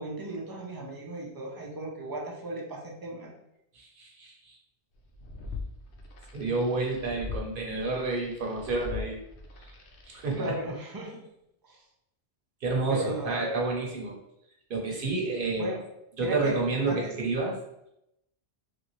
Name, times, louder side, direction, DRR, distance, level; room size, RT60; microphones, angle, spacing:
voice 1, 0.0-3.3 10.3-11.2 11.6-11.8 12.9-13.6 15.6-15.8 16.2-16.6 16.9-17.1, right 1 dB, 40° right, -1 dB, 0.3 m, -36 dB
voice 2, 3.7-4.6 6.3-9.2 9.6-9.7 10.1-10.7 12.6-14.2 14.7-15.8 16.2-17.6, right 3 dB, 55° right, 0 dB, 0.8 m, -30 dB
sound 1, 5.0-10.5, left 4 dB, 90° left, 0.9 m, -42 dB
3.2 x 2.6 x 2.9 m, 0.82 s
omnidirectional pair, 1.1 m